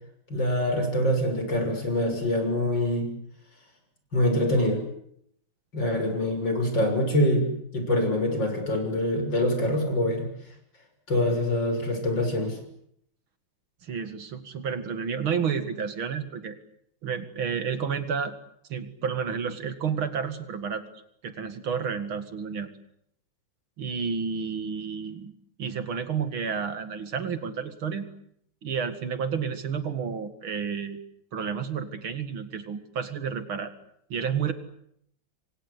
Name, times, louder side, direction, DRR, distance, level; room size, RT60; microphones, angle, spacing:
voice 1, 0.3-3.1 4.1-4.8 5.7-7.5 7.7-10.3 11.1-12.6, left 1 dB, 60° left, 5 dB, 7.2 m, -25 dB
voice 2, 13.8-16.6 17.0-18.3 18.7-20.8 21.2-22.7 23.8-25.3 25.6-28.1 28.6-31.0 31.3-33.7 34.1-34.5, right 6 dB, 75° right, 10 dB, 2.9 m, -30 dB
28.0 x 24.5 x 8.3 m, 0.72 s
omnidirectional pair, 2.3 m